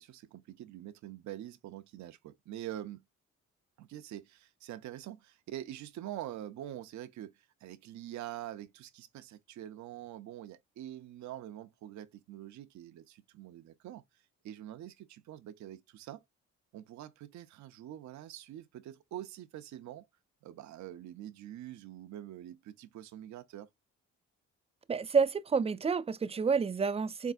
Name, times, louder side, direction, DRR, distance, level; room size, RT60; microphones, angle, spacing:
voice 1, 0.0-3.0 3.8-14.0 14.4-16.2 16.7-20.1 20.4-23.7, right 12 dB, 70° right, 0.6 m, -45 dB
voice 2, 24.9-27.3, right 5 dB, 20° right, 0.4 m, -29 dB
4.0 x 3.4 x 2.6 m
cardioid pair, 90°, 30 cm